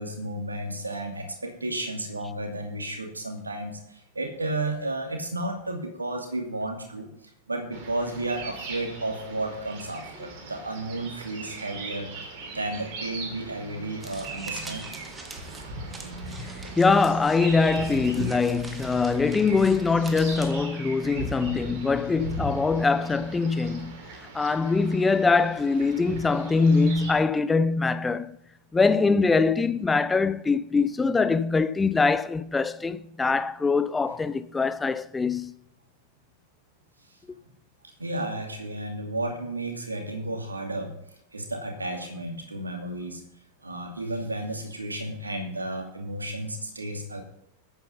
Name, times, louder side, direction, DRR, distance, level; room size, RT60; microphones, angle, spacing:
voice 1, 0.0-7.1 7.5-12.1 12.5-14.9 38.0-40.9 41.3-43.2 43.6-47.2, right 1 dB, 80° right, 2.4 m, -32 dB
sound 1, 7.7-27.1, right 2 dB, 45° right, 3.1 m, -39 dB
sound 2, 14.0-20.5, right 2 dB, 10° right, 1.7 m, -44 dB
voice 2, 16.8-24.0 24.3-28.4 28.7-35.5, left 4 dB, 10° left, 0.4 m, -23 dB
9.2 x 9.0 x 5.6 m
figure-of-eight pair, 90°, 0 cm